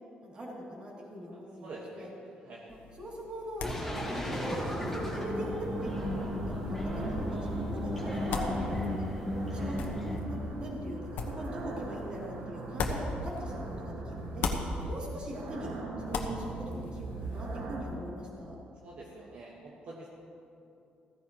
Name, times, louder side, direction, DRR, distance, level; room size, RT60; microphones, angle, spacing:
voice 1, 0.2-2.1 2.7-3.8 4.1-8.5 9.4-9.8 10.3-14.5 14.8-15.7 16.1-18.5, equal, 30° right, -4 dB, 2.9 m, -40 dB
voice 2, 1.6-2.1 2.4-2.7 14.8-14.9 18.8-20.1, right 2 dB, 50° right, -4 dB, 1.5 m, -46 dB
sound 1, 2.7-13.9 14.2-17.6, left 3 dB, 80° left, 1.2 m, -40 dB
sound 2, 3.6-10.2, left 1 dB, 5° left, 1.7 m, -35 dB
sound 3, 3.9-17.8, right 2 dB, 80° right, 1.8 m, -40 dB
15.5 x 15.0 x 3.1 m, 2.7 s
cardioid pair, 155°, 3 cm